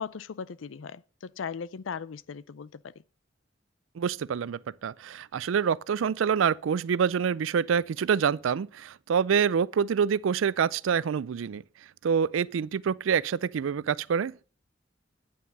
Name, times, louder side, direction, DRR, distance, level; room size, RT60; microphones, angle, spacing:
voice 1, 0.0-2.9, left 6 dB, 80° left, 0.5 m, -38 dB
voice 2, 4.0-11.6 12.0-14.3, right 7 dB, 85° right, 0.4 m, -26 dB
9.4 x 8.5 x 5.3 m
head